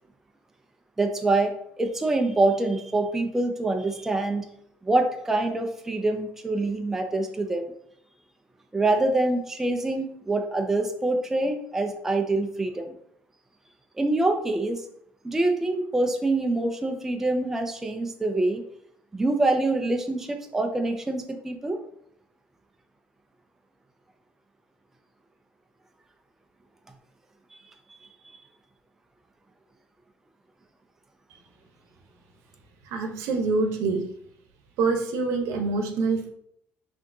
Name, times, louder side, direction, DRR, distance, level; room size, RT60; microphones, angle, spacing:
voice 1, 1.0-4.5 4.8-7.7 8.7-12.9 14.0-14.8 15.2-18.6 19.1-21.8, right 2 dB, 10° right, 4 dB, 0.3 m, -25 dB
voice 2, 32.9-34.0 34.8-36.3, right 4 dB, 80° right, 5 dB, 0.7 m, -25 dB
5.9 x 2.6 x 2.6 m, 0.70 s
cardioid pair, 170°, 5 cm